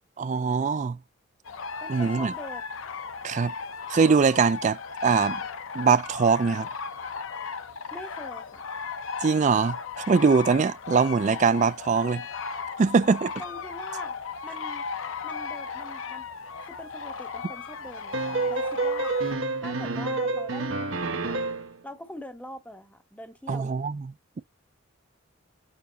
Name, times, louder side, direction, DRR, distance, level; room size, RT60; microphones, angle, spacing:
voice 1, 0.2-1.0 1.9-2.3 3.2-3.5 3.9-5.4 5.7-6.7 9.2-12.2 12.8-13.3 23.5-24.4, right 5 dB, 35° right, 0.3 m, -22 dB
sound 1, 1.5-19.4, left 5 dB, 70° left, 0.7 m, -36 dB
voice 2, 1.8-2.6 7.9-8.7 13.4-14.1 14.4-14.8 15.2-16.3 16.6-19.1 19.6-21.4 21.8-23.7, left 1 dB, 5° left, 1.3 m, -43 dB
sound 2, 18.1-21.8, right 3 dB, 70° right, 1.1 m, -28 dB
7.0 x 2.6 x 5.2 m
head